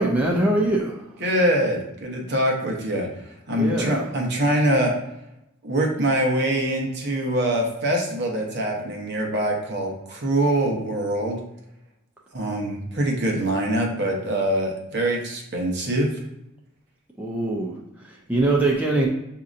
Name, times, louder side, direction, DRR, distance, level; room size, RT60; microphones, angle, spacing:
voice 1, 0.0-1.2 3.6-4.1 17.2-19.1, right 2 dB, 5° right, -3 dB, 0.4 m, -23 dB
voice 2, 1.2-3.1 3.5-4.9 5.6-11.4 12.3-16.1, right 1 dB, 55° right, 0 dB, 0.9 m, -24 dB
6.2 x 2.8 x 2.5 m, 0.85 s
head